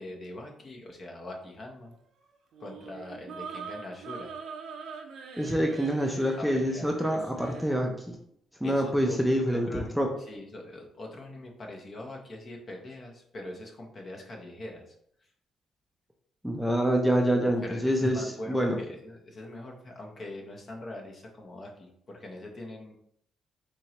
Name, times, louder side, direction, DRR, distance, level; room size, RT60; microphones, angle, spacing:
voice 1, 0.0-1.9 2.6-4.3 6.4-6.9 8.6-9.2 9.5-14.9 17.4-22.9, left 1 dB, 45° left, 0 dB, 1.0 m, -42 dB
sound 1, 2.5-7.8, right 6 dB, 70° right, 0.7 m, -43 dB
voice 2, 5.4-8.2 8.6-10.1 16.4-18.8, equal, ahead, 2 dB, 0.6 m, -26 dB
4.4 x 3.1 x 3.0 m, 0.70 s
cardioid pair, 90°, 0 cm